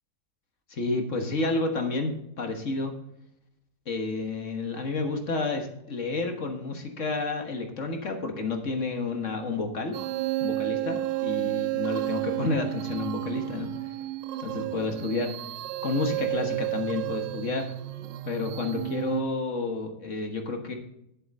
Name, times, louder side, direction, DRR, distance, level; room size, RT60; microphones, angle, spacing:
voice 1, 0.7-2.1 2.4-2.9 3.9-9.9 10.4-13.7 14.4-15.3 15.8-17.7 18.2-20.8, left 3 dB, 45° left, 4 dB, 1.6 m, -30 dB
sound 1, 9.9-19.2, right 17 dB, 85° right, 1.3 m, -31 dB
11.0 x 7.9 x 4.2 m, 0.80 s
omnidirectional pair, 1.9 m